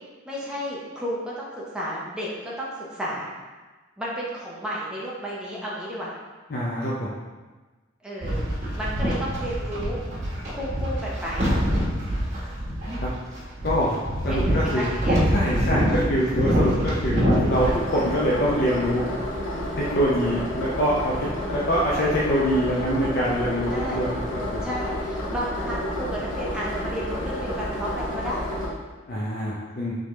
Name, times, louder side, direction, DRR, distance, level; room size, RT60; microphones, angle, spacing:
voice 1, 0.2-3.3 4.0-6.1 8.0-8.5 8.7-10.0 10.5-11.5 14.3-15.2 18.4-18.6 20.2-20.6 23.7-24.0 24.6-28.5, equal, 5° right, -6 dB, 0.8 m, -32 dB
voice 2, 6.5-7.1 13.0-13.1 13.6-13.9 14.2-14.9 15.3-17.2 17.5-19.0 19.7-24.4 29.1-30.0, equal, 50° left, -6 dB, 0.5 m, -24 dB
sound 1, 8.2-17.8, equal, 35° right, 1.3 m, -25 dB
sound 2, 17.5-28.7, left 1 dB, 85° left, 0.9 m, -30 dB
3.7 x 3.3 x 3.2 m, 1.3 s
head